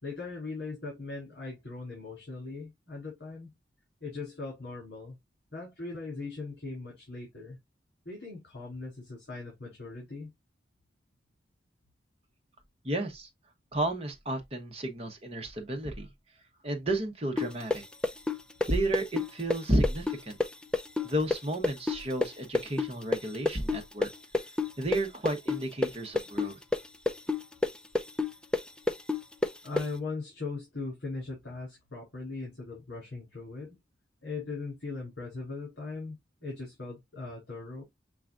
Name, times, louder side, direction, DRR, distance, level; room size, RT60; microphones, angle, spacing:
voice 1, 0.0-3.5 4.0-5.2 5.5-7.6 8.1-10.3 29.6-33.8 34.2-36.2 36.4-37.8, left 3 dB, 65° left, 3.5 m, -39 dB
voice 2, 12.8-13.3 13.7-16.1 16.6-17.8 18.7-20.4 21.0-24.1 24.8-26.6, right 1 dB, 35° right, 1.2 m, -32 dB
sound 1, 17.4-25.0 25.3-29.9, left 3 dB, 5° left, 0.4 m, -28 dB
7.0 x 3.0 x 2.5 m
head